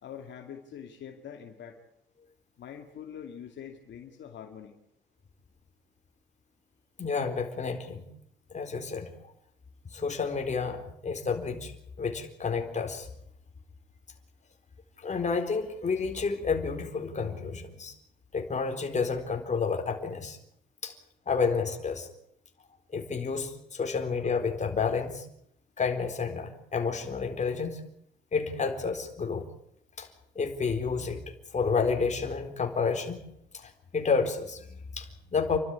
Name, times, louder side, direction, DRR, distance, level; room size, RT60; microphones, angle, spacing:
voice 1, 0.0-1.8 2.6-4.7, left 8 dB, 65° left, 3 dB, 2.5 m, -44 dB
voice 2, 7.0-8.0 8.5-9.1 9.9-11.7 12.0-13.1 15.0-17.9 18.3-20.4 20.8-20.9 21.3-22.1 22.9-25.3 25.8-27.8 28.3-29.5 30.0-30.1 30.3-31.2 31.5-33.2 33.5-35.6, left 5 dB, 35° left, 5 dB, 4.2 m, -30 dB
29.0 x 12.5 x 9.7 m, 0.75 s
cardioid pair, 90°, 20 cm